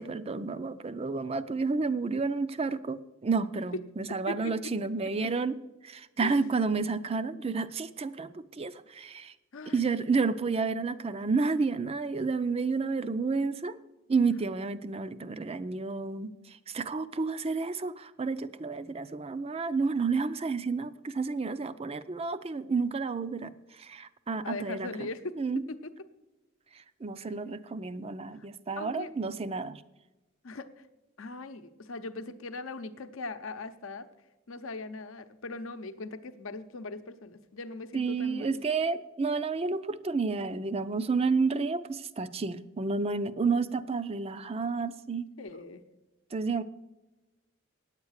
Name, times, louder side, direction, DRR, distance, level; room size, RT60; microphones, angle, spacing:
voice 1, 0.0-5.6 5.8-9.3 9.7-13.8 14.1-16.3 16.7-23.5 23.8-24.9 25.4-25.6 27.0-29.8 37.9-45.3 46.3-46.6, right 4 dB, 30° right, 14 dB, 0.4 m, -30 dB
voice 2, 4.3-4.7 5.0-5.3 6.2-6.5 9.5-10.0 24.4-25.8 28.4-28.5 28.8-29.1 30.4-30.9 31.2-34.1 34.5-38.6 45.4-45.8, left 3 dB, 70° left, 10 dB, 0.8 m, -40 dB
9.6 x 8.2 x 6.4 m, 1.1 s
head